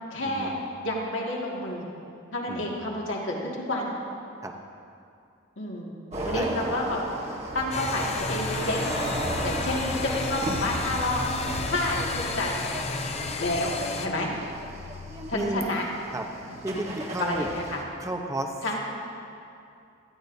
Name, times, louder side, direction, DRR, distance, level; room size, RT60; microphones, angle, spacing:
voice 1, 0.1-0.5 0.8-1.9 2.3-3.9 5.6-5.9 6.3-7.0 7.5-8.8 9.4-11.2 11.7-12.6 13.4-13.7 14.0-14.3 15.3-15.9 16.5-16.8 17.2-17.8 18.6-18.8, left 1 dB, 70° left, -3 dB, 2.0 m, -29 dB
voice 2, 2.5-2.8 4.4-4.5 6.3-6.7 13.5-13.6 15.3-15.6 16.1-16.2 16.6-17.5 18.0-18.5, right 1 dB, 15° right, 3 dB, 0.8 m, -32 dB
sound 1, 6.1-17.8, right 1 dB, 30° right, 1.3 m, -36 dB
sound 2, 7.7-14.1, left 3 dB, 30° left, 0.6 m, -32 dB
sound 3, 8.2-15.7, left 6 dB, 90° left, 0.4 m, -43 dB
17.5 x 13.5 x 2.7 m, 2.5 s
head